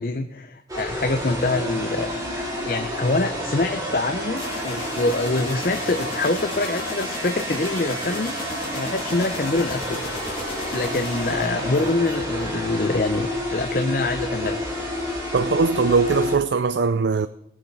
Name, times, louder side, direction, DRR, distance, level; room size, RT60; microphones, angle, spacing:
voice 1, 0.0-10.1 10.7-14.6, left 2 dB, 50° left, 0.7 m, -25 dB
sound 1, 0.7-16.4, left 1 dB, 20° right, 2.9 m, -30 dB
sound 2, 4.4-13.0, left 2 dB, 30° left, 2.5 m, -36 dB
voice 2, 15.3-17.3, right 4 dB, 80° right, 0.4 m, -20 dB
18.0 x 7.5 x 4.7 m
head